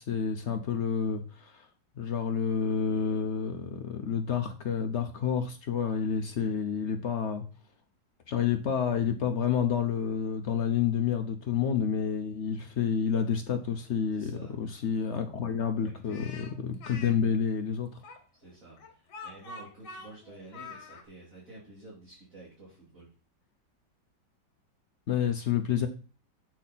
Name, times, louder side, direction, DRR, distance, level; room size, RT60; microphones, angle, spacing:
voice 1, 0.0-1.7 2.0-7.4 8.3-14.3 14.6-18.0 25.1-25.9, left 7 dB, 90° left, 6 dB, 0.6 m, -29 dB
voice 2, 14.1-14.5 15.6-16.3 18.3-23.1, right 2 dB, 40° right, -7 dB, 3.0 m, -51 dB
Speech, 16.1-17.1 18.0-21.0, left 3 dB, 75° left, 2.1 m, -45 dB
7.3 x 6.0 x 4.1 m, 0.38 s
omnidirectional pair, 2.2 m